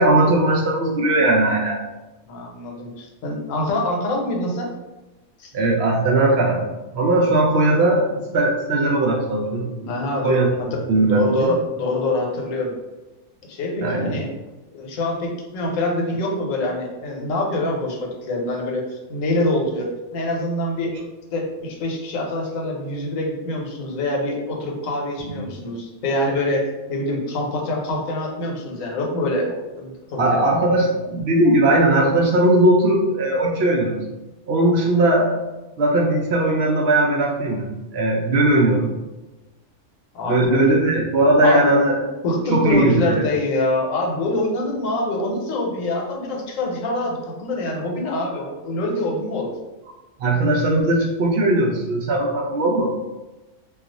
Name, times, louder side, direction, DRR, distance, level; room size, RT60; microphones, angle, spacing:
voice 1, 0.0-1.8 5.5-6.6 6.9-8.1 8.3-10.0 10.2-10.5 10.9-11.5 13.8-14.1 25.3-25.4 30.2-34.0 34.5-35.4 35.8-37.7 37.9-38.9 40.3-42.0 42.5-43.1 50.2-52.9, right 1 dB, 65° right, -1 dB, 0.7 m, -18 dB
voice 2, 2.3-4.7 5.4-5.5 9.9-10.4 10.7-12.7 13.5-14.3 14.7-20.9 21.3-30.5 40.1-40.8 41.4-41.7 42.2-49.5, left 1 dB, 85° left, 0 dB, 1.1 m, -25 dB
2.3 x 2.3 x 3.8 m, 1.1 s
omnidirectional pair, 1.3 m